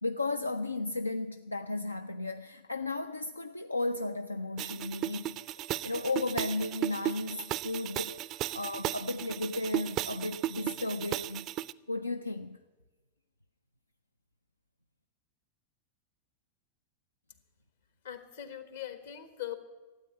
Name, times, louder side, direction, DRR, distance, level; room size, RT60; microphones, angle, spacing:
voice 1, 0.0-11.5 11.9-12.6, left 2 dB, 85° left, 0.4 m, -34 dB
sound 1, 4.6-11.7, right 14 dB, 35° right, 0.4 m, -36 dB
voice 2, 18.0-19.5, left 11 dB, 60° left, 1.4 m, -41 dB
13.0 x 8.8 x 9.5 m
figure-of-eight pair, 90°, 0 cm